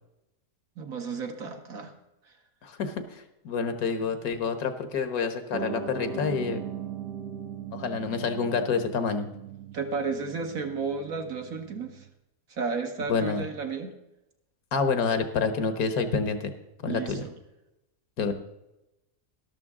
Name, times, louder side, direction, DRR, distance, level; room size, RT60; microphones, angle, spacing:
voice 1, 0.8-1.9 9.7-12.1 12.5-13.9 16.9-17.3, right 5 dB, 60° right, 4 dB, 1.6 m, -33 dB
voice 2, 2.6-6.6 7.7-9.3 13.1-13.4 14.7-16.5 16.8-17.2 18.2-18.3, left 5 dB, 65° left, 9 dB, 1.4 m, -28 dB
Piano, 5.5-12.1, right 6 dB, 80° right, 1.3 m, -39 dB
12.5 x 12.0 x 3.6 m, 0.92 s
omnidirectional pair, 1.7 m